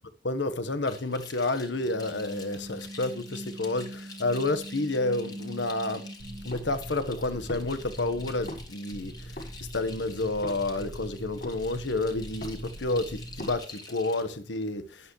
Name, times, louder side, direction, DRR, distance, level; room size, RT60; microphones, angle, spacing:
voice 1, 0.2-6.1 6.4-9.3 9.7-15.1, left 2 dB, 85° left, 1.3 m, -30 dB
sound 1, 0.8-14.2, left 3 dB, 20° left, 2.0 m, -48 dB
sound 2, 1.7-7.0 7.3-13.5, right 1 dB, 60° right, 1.8 m, -46 dB
sound 3, 6.2-8.6 8.9-13.6, equal, 55° left, 4.8 m, -41 dB
12.5 x 11.0 x 3.2 m
head